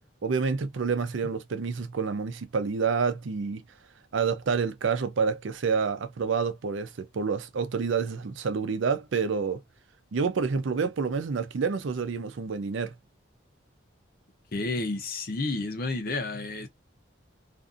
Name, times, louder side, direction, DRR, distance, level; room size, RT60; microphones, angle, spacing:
voice 1, 0.2-3.6 4.1-9.6 10.1-12.9, right 5 dB, 75° right, 0.5 m, -28 dB
voice 2, 14.5-16.7, left 2 dB, 50° left, 0.6 m, -31 dB
2.5 x 2.5 x 2.4 m
head